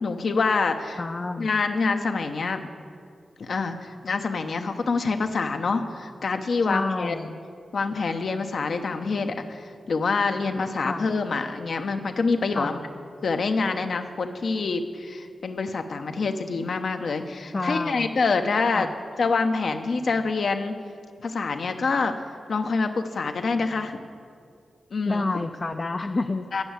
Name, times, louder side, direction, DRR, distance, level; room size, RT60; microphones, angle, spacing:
voice 1, 0.0-1.0 1.4-2.6 3.4-7.2 7.7-12.8 13.2-18.9 19.2-20.7 21.2-22.1 22.5-24.0 24.9-25.3 26.5-26.6, left 4 dB, 70° left, 6 dB, 0.7 m, -26 dB
voice 2, 1.0-1.5 4.6-4.7 6.7-7.4 10.8-11.1 12.5-12.8 17.5-18.1 18.7-18.9 25.0-26.6, left 3 dB, 40° left, 5 dB, 0.4 m, -29 dB
9.8 x 6.2 x 8.1 m, 2.2 s
supercardioid pair, 40°, 0 cm